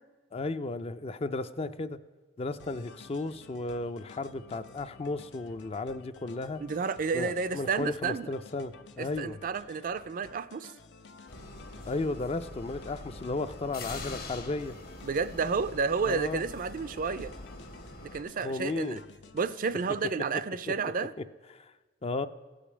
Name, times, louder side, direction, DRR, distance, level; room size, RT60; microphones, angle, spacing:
voice 1, 0.3-2.0 2.4-6.6 7.1-9.4 11.8-14.8 16.1-16.4 18.4-19.0 21.5-21.7 22.0-22.3, left 3 dB, 35° left, 12 dB, 0.4 m, -34 dB
sound 1, 2.6-20.1, left 4 dB, 75° left, 0.7 m, -53 dB
voice 2, 6.6-8.3 9.0-10.7 15.0-17.3 18.1-19.0 19.3-21.1, right 5 dB, 50° right, 14 dB, 0.4 m, -31 dB
sound 2, 11.3-18.2, left 2 dB, 55° left, 1.5 m, -44 dB
15.0 x 5.1 x 7.1 m, 1.3 s
head